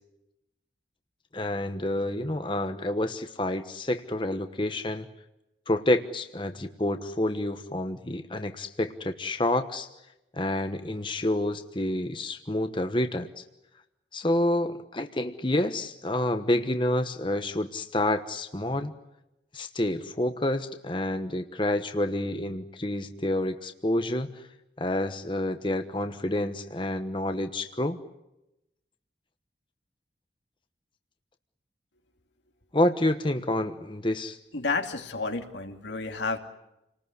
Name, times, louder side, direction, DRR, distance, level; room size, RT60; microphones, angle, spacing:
voice 1, 1.3-5.1 5.7-9.9 10.3-13.4 14.1-18.9 19.5-24.4 24.8-28.0 32.7-34.4, left 1 dB, 25° left, 7 dB, 1.1 m, -28 dB
voice 2, 34.5-36.4, left 3 dB, 90° left, 4 dB, 2.8 m, -31 dB
29.5 x 19.5 x 9.9 m, 0.92 s
head